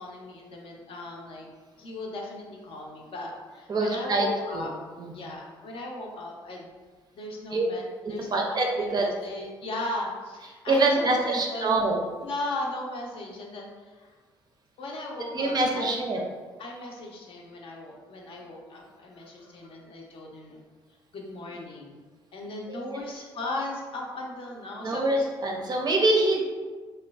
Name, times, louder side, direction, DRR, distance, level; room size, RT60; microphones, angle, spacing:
voice 1, 0.0-1.5 1.8-4.7 5.1-6.7 7.2-7.8 8.1-11.8 12.2-14.1 14.8-16.0 16.6-20.6 21.1-22.0 22.3-25.3, left 2 dB, 50° left, -1 dB, 0.6 m, -37 dB
voice 2, 3.7-4.3 4.5-4.7 5.0-5.3 7.5-7.7 8.3-9.1 10.7-12.1 15.3-16.2 22.7-23.0 24.8-26.4, right 2 dB, 35° right, 1 dB, 0.5 m, -25 dB
3.1 x 2.2 x 2.3 m, 1.4 s
figure-of-eight pair, 50°, 12 cm